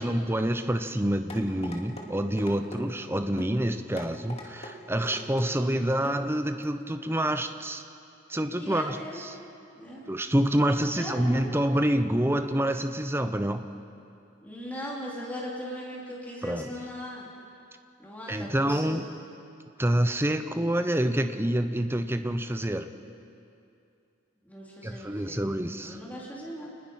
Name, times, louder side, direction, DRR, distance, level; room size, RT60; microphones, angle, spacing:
voice 1, 0.0-7.8 8.3-9.4 10.1-13.6 16.4-16.7 18.3-19.0 19.8-22.9 24.8-26.0, right 1 dB, 10° right, 8 dB, 0.8 m, -27 dB
sound 1, 1.3-2.1 2.4-2.8 3.4-3.5 4.0-4.7 5.0-5.5 6.0-6.2 6.6-6.7, left 1 dB, 30° left, 2.3 m, -41 dB
voice 2, 8.5-9.3 9.8-10.1 10.8-11.5 14.4-17.3 18.0-18.9 24.4-25.5 25.9-26.7, equal, 10° left, -4 dB, 3.6 m, -39 dB
28.5 x 20.5 x 5.7 m, 2.6 s
head